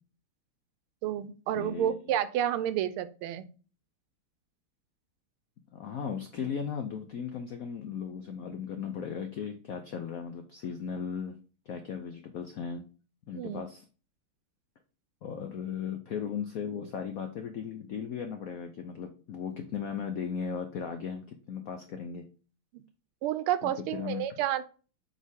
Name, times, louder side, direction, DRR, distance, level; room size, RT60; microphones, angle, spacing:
voice 1, 1.0-3.5 13.4-13.6 22.7-22.8 23.2-24.7, right 11 dB, 85° right, 14 dB, 1.5 m, -30 dB
voice 2, 1.5-1.9 5.7-11.3 11.7-12.8 13.3-13.9 15.2-22.2 23.6-24.4, left 7 dB, 80° left, 6 dB, 0.7 m, -37 dB
7.2 x 4.1 x 3.6 m, 0.37 s
omnidirectional pair, 2.4 m